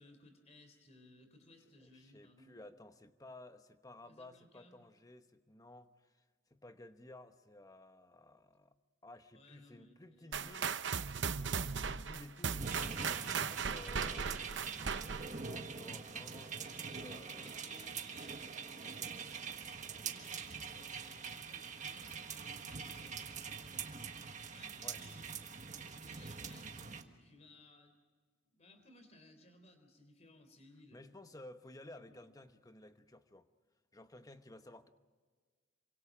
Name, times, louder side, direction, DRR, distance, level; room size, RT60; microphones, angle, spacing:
voice 1, 0.0-2.6 4.0-4.8 9.3-11.6 14.1-14.9 16.6-18.8 20.0-24.1 24.5-25.3 26.0-28.0 28.4-31.0 32.1-32.3, left 1 dB, 35° left, 3.7 m, -62 dB
voice 2, 1.8-6.2 6.5-8.7 9.0-10.7 11.4-14.2 15.3-17.8 24.8-25.0 30.9-33.5 33.9-34.9, left 1 dB, 20° left, 1.0 m, -55 dB
sound 1, 10.3-15.4, right 6 dB, 60° right, 0.7 m, -37 dB
sound 2, 12.6-27.0, right 5 dB, 40° right, 1.5 m, -44 dB
27.5 x 25.0 x 5.0 m
head